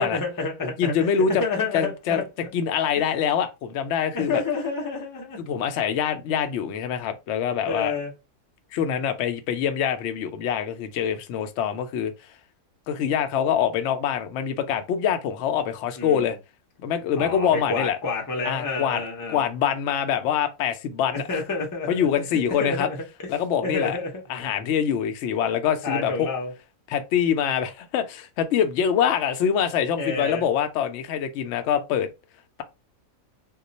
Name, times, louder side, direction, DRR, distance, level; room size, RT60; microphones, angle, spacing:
voice 1, 0.0-2.3 4.1-5.4 7.7-8.1 16.0-16.3 17.2-19.4 21.1-22.0 22.6-23.3 23.6-24.2 25.8-26.5 30.0-30.4, left 3 dB, 25° left, 0.4 m, -29 dB
voice 2, 0.6-1.4 1.7-2.2 2.5-4.4 5.4-7.9 8.7-12.1 12.9-16.4 16.8-18.0 18.4-19.0 19.3-21.3 21.9-22.9 23.3-24.0 24.3-26.3 26.9-32.1, left 8 dB, 65° left, 0.7 m, -24 dB
2.4 x 2.2 x 3.9 m
omnidirectional pair, 1.5 m